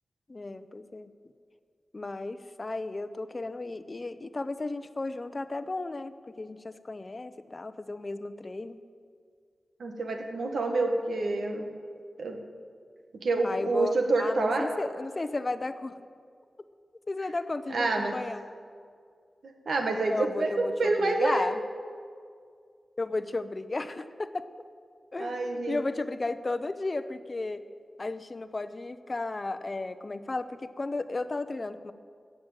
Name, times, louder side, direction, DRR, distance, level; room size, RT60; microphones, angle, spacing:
voice 1, 0.3-1.1 1.9-8.8 13.4-13.9 14.2-16.0 17.1-18.5 20.1-20.7 21.0-21.6 23.0-24.5 25.1-27.6 28.0-31.9, left 2 dB, 40° left, 12 dB, 0.7 m, -34 dB
voice 2, 9.8-11.7 12.2-12.4 13.2-14.7 17.7-18.1 19.4-21.5 25.2-25.8, right 2 dB, 80° right, 3 dB, 1.5 m, -27 dB
15.0 x 6.1 x 8.9 m, 2.2 s
cardioid pair, 45°, 0 cm